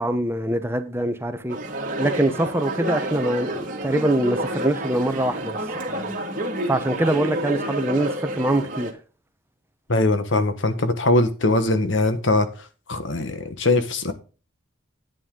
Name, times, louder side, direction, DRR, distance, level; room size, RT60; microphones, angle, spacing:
voice 1, 0.0-1.6 2.0-5.6 5.9-6.1 6.6-8.9, right 1 dB, 15° right, 0.9 m, -24 dB
sound 1, 1.5-8.9, right 1 dB, 45° right, 2.1 m, -29 dB
voice 2, 9.9-12.5 12.9-14.1, left 2 dB, 70° left, 1.3 m, -21 dB
9.2 x 8.9 x 3.8 m
head